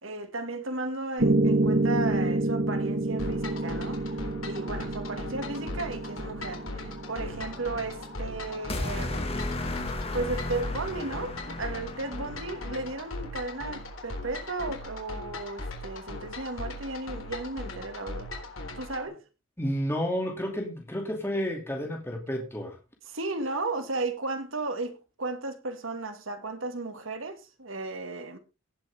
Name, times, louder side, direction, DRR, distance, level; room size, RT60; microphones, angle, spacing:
voice 1, 0.0-4.0 4.4-9.3 10.1-18.3 18.7-19.2 23.1-28.4, right 2 dB, 75° right, 2.1 m, -35 dB
Piano, 1.2-9.3, right 2 dB, 55° right, 1.2 m, -29 dB
sound 1, 3.2-19.0, left 2 dB, 85° left, 3.8 m, -39 dB
sound 2, 8.7-13.0, left 2 dB, 30° left, 1.8 m, -34 dB
voice 2, 19.6-22.8, equal, 10° left, 2.5 m, -31 dB
18.0 x 7.8 x 3.6 m
head